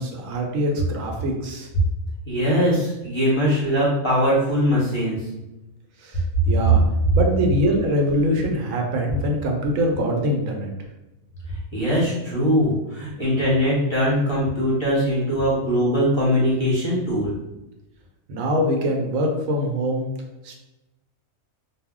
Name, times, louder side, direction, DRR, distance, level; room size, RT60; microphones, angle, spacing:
voice 1, 0.0-1.7 6.0-6.8 7.1-10.7 18.3-20.1 20.4-20.6, equal, 75° right, 2 dB, 1.0 m, -23 dB
voice 2, 2.3-5.2 6.6-6.7 11.7-17.3, equal, 30° left, -8 dB, 0.6 m, -21 dB
2.3 x 2.0 x 3.5 m, 0.99 s
omnidirectional pair, 1.4 m